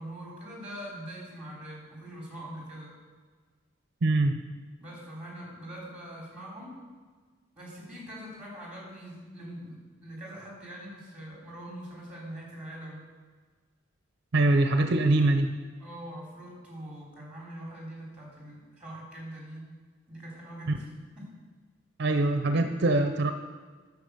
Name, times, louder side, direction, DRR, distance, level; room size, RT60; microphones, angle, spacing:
voice 1, 0.0-3.0 4.8-6.8 7.6-13.0 15.8-19.8 20.1-21.3, right 1 dB, 5° right, -3 dB, 3.5 m, -43 dB
voice 2, 4.0-4.4 14.3-15.5 22.0-23.3, right 2 dB, 60° right, 7 dB, 0.6 m, -23 dB
9.8 x 7.1 x 6.8 m, 1.5 s
head